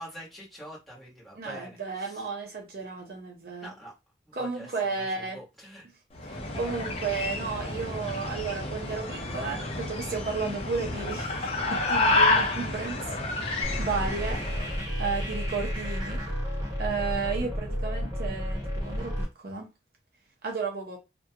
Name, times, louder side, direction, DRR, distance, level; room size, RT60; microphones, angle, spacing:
voice 1, 0.0-2.3 3.6-3.9 4.2-5.9 14.0-14.4, equal, ahead, 1.1 m, -45 dB
voice 2, 1.4-3.7 4.3-5.4 6.2-14.4 15.0-16.2 16.8-18.6 18.9-19.7 20.4-21.0, right 4 dB, 55° right, 0.5 m, -33 dB
sound 1, 6.1-14.8, left 2 dB, 35° left, 0.5 m, -29 dB
sound 2, 13.6-19.2, equal, 20° right, 0.7 m, -31 dB
2.4 x 2.2 x 2.7 m
head